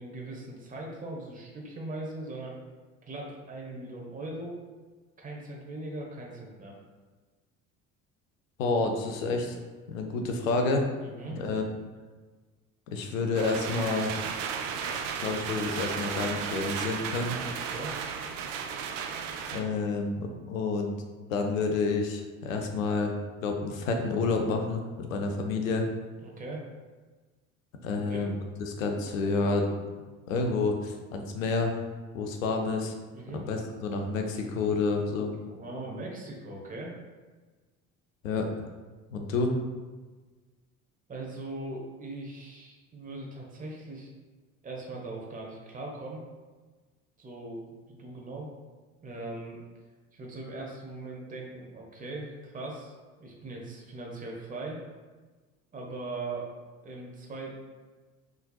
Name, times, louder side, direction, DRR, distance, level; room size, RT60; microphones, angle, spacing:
voice 1, 0.0-2.6 3.0-4.6 5.2-6.8 11.0-11.4 17.6-18.0 26.2-26.7 27.9-28.3 33.1-33.4 35.4-36.9 41.1-44.1 44.6-46.2 47.2-48.5 49.0-49.6 50.1-54.8 55.7-56.5 56.8-57.6, right 2 dB, 20° right, -2 dB, 1.2 m, -40 dB
voice 2, 8.6-9.6 9.9-10.9 11.3-11.6 12.9-14.2 15.2-17.4 19.5-21.0 21.3-23.1 23.4-25.9 27.8-28.3 28.6-29.7 30.3-31.7 32.1-32.9 33.3-35.3 38.2-38.5 39.1-39.5, left 3 dB, 70° left, 4 dB, 0.7 m, -29 dB
sound 1, 13.3-19.6, right 6 dB, 60° right, 0.6 m, -34 dB
5.6 x 3.8 x 2.4 m, 1.3 s
figure-of-eight pair, 60°, 41 cm